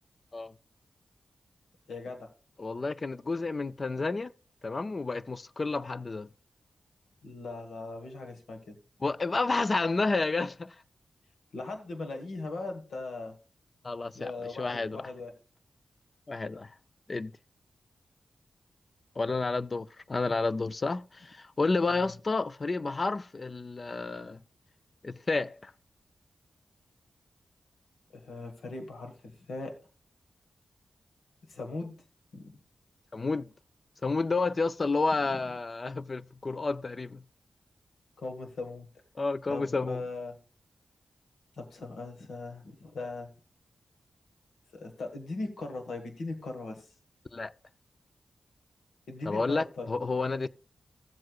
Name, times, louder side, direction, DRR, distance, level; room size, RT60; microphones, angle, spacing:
voice 1, 1.9-2.3 7.2-8.8 11.5-13.4 14.1-15.3 21.9-22.1 28.1-29.7 31.5-31.9 32.3-32.6 35.1-35.4 38.2-38.9 39.5-40.4 41.6-43.3 44.7-46.9 49.1-49.9, left 3 dB, 90° left, 1.5 m, -39 dB
voice 2, 2.6-4.3 4.6-6.3 9.0-10.7 13.8-14.3 14.6-15.1 16.3-16.7 17.1-17.3 19.2-24.4 25.0-25.7 33.1-33.5 34.0-37.2 39.2-40.0 47.3-47.5 49.3-50.5, left 3 dB, 45° left, 0.5 m, -30 dB
15.5 x 7.7 x 2.4 m
cardioid pair, 60°, 0 cm